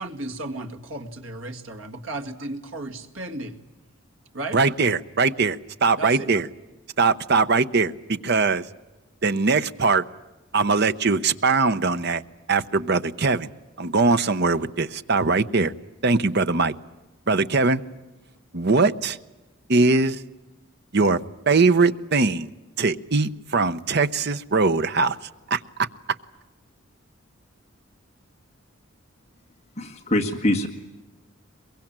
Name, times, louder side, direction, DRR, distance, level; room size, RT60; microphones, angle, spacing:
voice 1, 0.0-3.6 4.3-4.6 6.0-6.3, right 2 dB, 70° right, 5 dB, 2.0 m, -34 dB
voice 2, 4.5-6.5 7.0-8.7 9.2-10.0 10.5-12.2 12.5-13.5 13.8-15.7 16.0-16.7 17.3-17.8 18.5-19.2 19.7-20.2 20.9-22.5 22.8-25.2 25.5-25.6, right 4 dB, 50° right, 12 dB, 0.8 m, -21 dB
voice 3, 29.8-30.7, left 1 dB, 30° left, 2 dB, 1.9 m, -23 dB
23.0 x 22.5 x 8.8 m, 1.1 s
head